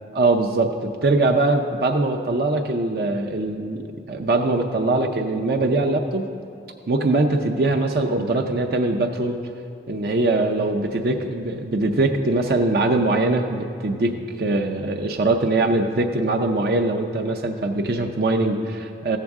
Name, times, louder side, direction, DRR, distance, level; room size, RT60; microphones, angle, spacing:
voice 1, 0.1-3.8 4.1-6.3 6.9-9.4 9.9-19.2, right 2 dB, 55° right, 3 dB, 0.5 m, -22 dB
14.0 x 7.5 x 3.5 m, 2.5 s
head